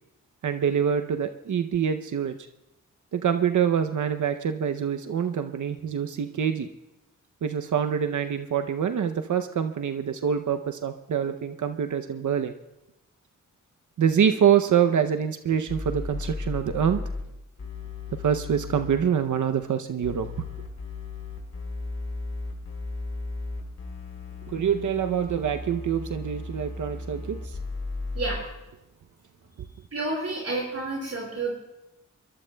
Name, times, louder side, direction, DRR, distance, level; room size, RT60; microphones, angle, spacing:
voice 1, 0.4-2.4 3.1-6.7 7.4-12.5 14.0-17.0 18.2-20.3 24.5-27.6, right 8 dB, 65° right, 7 dB, 0.7 m, -25 dB
sound 1, 15.7-17.2 17.6-19.0 20.0-28.4, left 3 dB, 55° left, 4.0 m, -35 dB
voice 2, 29.9-31.6, right 2 dB, 50° right, -4 dB, 5.4 m, -30 dB
22.5 x 21.5 x 2.3 m, 0.95 s
cardioid pair, 80°, 32 cm